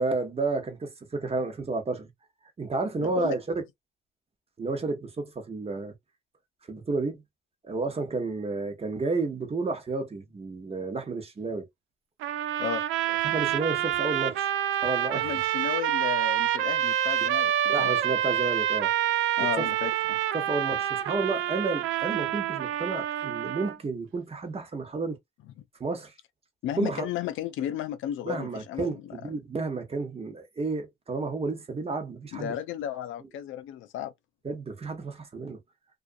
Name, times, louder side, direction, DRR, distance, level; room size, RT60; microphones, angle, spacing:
voice 1, 0.0-2.1 2.6-3.6 4.6-5.9 6.7-7.2 7.6-11.7 13.2-14.5 14.8-15.5 17.2-17.3 17.7-18.9 19.6-19.9 20.3-25.2 25.8-26.1 26.8-27.1 28.2-32.5 34.4-35.6, right 3 dB, 30° right, 1.0 m, -31 dB
voice 2, 3.0-3.4 12.6-12.8 15.1-17.9 19.4-20.2 25.6-25.7 26.6-29.2 32.3-34.1, left 11 dB, 85° left, 0.5 m, -34 dB
sound 1, 12.2-23.8, right 11 dB, 90° right, 0.4 m, -27 dB
2.4 x 2.4 x 2.5 m
cardioid pair, 90°, 20 cm